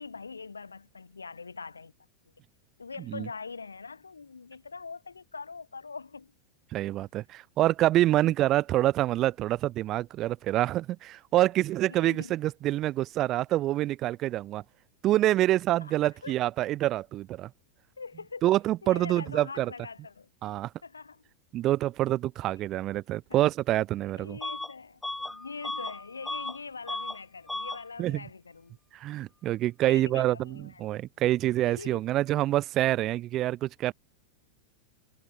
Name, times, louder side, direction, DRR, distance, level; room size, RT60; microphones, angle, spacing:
voice 1, 0.0-1.9 2.8-6.3 11.9-12.3 15.7-15.9 16.2-16.4 18.0-18.6 18.8-20.3 20.8-21.2 24.2-28.8 29.9-30.8 31.6-32.0, left 4 dB, 75° left, 4.8 m, -42 dB
voice 2, 6.7-14.6 15.0-17.5 18.4-19.7 20.4-20.7 21.5-24.4 28.0-28.2 28.9-33.9, right 14 dB, 35° right, 0.8 m, -26 dB
Bus / Alarm, 24.4-24.7 25.0-26.6 26.8-27.2 27.5-27.8, left 2 dB, 5° left, 7.1 m, -35 dB
figure-of-eight pair, 90°, 0 cm